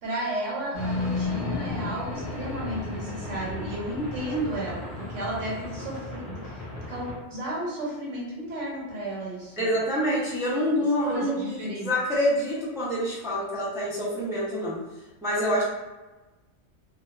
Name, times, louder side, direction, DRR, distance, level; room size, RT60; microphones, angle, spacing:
voice 1, 0.0-9.8 10.8-10.9 11.1-11.9, right 1 dB, 80° right, -5 dB, 1.2 m, -33 dB
sound 1, 0.7-7.2, left 2 dB, 35° left, 0.8 m, -33 dB
voice 2, 9.6-14.8 15.2-15.6, equal, 5° right, -8 dB, 0.3 m, -26 dB
2.6 x 2.3 x 2.3 m, 1.2 s
omnidirectional pair, 1.3 m